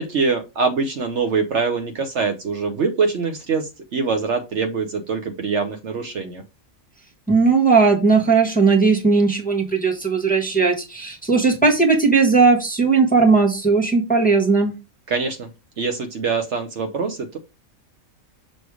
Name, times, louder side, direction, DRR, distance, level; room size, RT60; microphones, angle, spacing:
voice 1, 0.0-6.4 15.1-15.5 15.8-17.4, right 4 dB, 60° right, 6 dB, 1.1 m, -24 dB
voice 2, 7.3-14.7, right 4 dB, 5° left, -1 dB, 1.1 m, -17 dB
6.2 x 3.3 x 4.7 m, 0.27 s
omnidirectional pair, 1.4 m